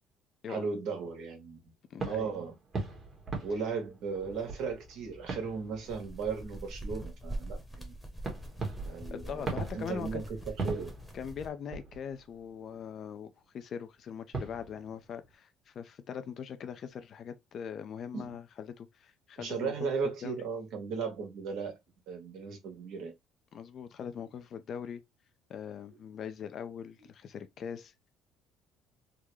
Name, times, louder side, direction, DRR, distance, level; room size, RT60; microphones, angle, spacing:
voice 1, 0.5-1.6 2.0-2.5 3.4-7.9 8.8-10.2 10.6-10.9 18.1-18.3 19.4-21.8 22.1-23.1, right 5 dB, 70° right, 1.4 m, -36 dB
voice 2, 1.9-2.3 9.1-10.2 11.1-19.9 20.2-20.4 23.5-25.0 25.5-28.1, left 7 dB, 50° left, 0.5 m, -41 dB
sound 1, 2.0-6.5 6.8-7.0 8.2-12.8 14.1-14.2 14.3-15.3, right 3 dB, 35° right, 1.4 m, -41 dB
sound 2, 4.3-11.5, right 1 dB, ahead, 1.1 m, -44 dB
3.7 x 2.1 x 3.2 m
cardioid pair, 100°, 0 cm